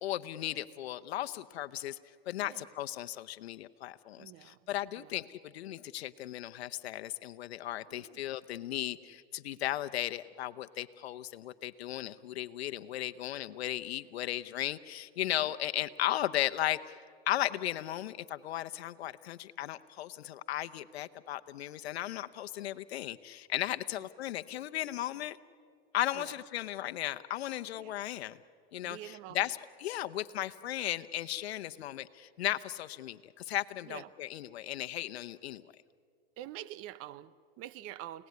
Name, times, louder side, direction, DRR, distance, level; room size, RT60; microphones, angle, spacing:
voice 1, 0.0-2.0 2.3-17.0 17.3-25.4 25.9-28.4 28.7-35.6, left 13 dB, 85° left, 0.9 m, -36 dB
voice 2, 4.2-4.6 5.0-5.2 7.8-8.2 15.4-15.6 23.9-24.1 26.1-26.4 27.8-28.0 28.8-29.5 33.9-34.1 36.4-38.3, right 13 dB, 45° right, 1.0 m, -47 dB
29.5 x 17.5 x 9.5 m
hypercardioid pair, 115°, 31 cm